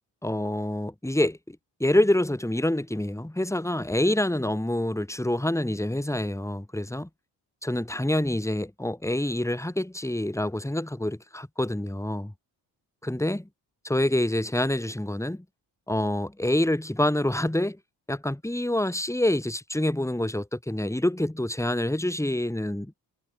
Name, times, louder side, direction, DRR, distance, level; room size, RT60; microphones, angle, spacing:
voice 1, 0.2-7.1 7.6-12.3 13.0-13.5 13.8-15.4 15.9-17.8 18.1-22.9, left 1 dB, 5° left, 3.0 m, -26 dB
supercardioid pair, 45°, 49 cm